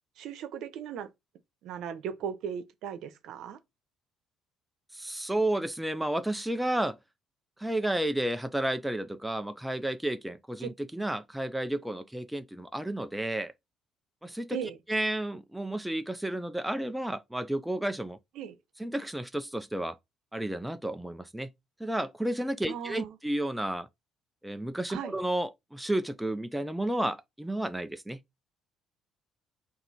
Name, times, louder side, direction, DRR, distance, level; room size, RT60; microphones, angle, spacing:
voice 1, 0.2-1.1 1.6-3.6 10.6-10.7 14.5-14.8 18.3-18.6 22.7-23.2 24.9-25.1, right 8 dB, 70° right, 0.7 m, -37 dB
voice 2, 4.9-7.0 7.6-13.5 14.2-14.6 14.9-18.2 18.8-20.0 20.3-21.5 21.8-23.9 24.4-28.2, right 1 dB, 5° right, 0.3 m, -32 dB
4.5 x 2.6 x 4.0 m
cardioid pair, 135°, 0 cm